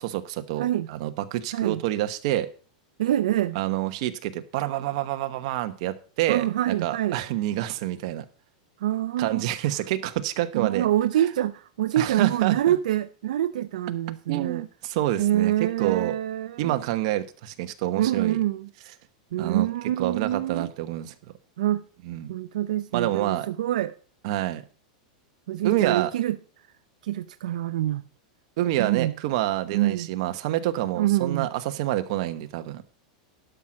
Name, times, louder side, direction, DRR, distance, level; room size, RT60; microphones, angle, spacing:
voice 1, 0.0-2.5 3.5-8.2 9.2-10.9 11.2-11.3 11.9-12.7 14.3-16.1 16.6-18.4 19.4-19.7 20.0-21.1 22.0-22.3 22.9-23.5 24.2-24.6 25.6-26.1 28.6-32.8, right 14 dB, 50° right, 1.1 m, -27 dB
voice 2, 3.0-3.6 6.3-7.2 8.8-9.5 10.5-14.7 15.2-16.8 18.0-18.7 19.3-20.7 21.6-21.8 22.3-24.0 25.5-26.4 27.0-28.0 28.8-29.1 29.7-30.1 31.0-31.5, right 13 dB, 80° right, 0.5 m, -25 dB
11.5 x 6.0 x 6.3 m
supercardioid pair, 155°, 4 cm